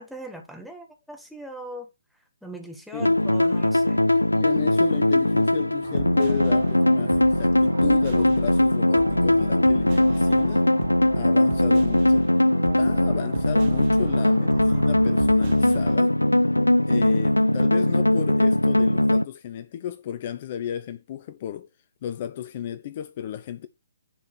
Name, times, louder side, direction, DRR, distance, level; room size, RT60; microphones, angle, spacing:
voice 1, 0.0-1.9 2.4-4.0, right 1 dB, ahead, 1.6 m, -40 dB
sound 1, 3.0-19.2, left 1 dB, 90° left, 0.4 m, -20 dB
voice 2, 4.1-10.7 11.1-12.3 12.6-16.2 16.9-21.7 22.0-23.7, left 10 dB, 35° left, 0.7 m, -33 dB
sound 2, 5.8-16.0, right 11 dB, 40° right, 0.5 m, -38 dB
10.0 x 4.5 x 4.7 m
figure-of-eight pair, 135°, 0 cm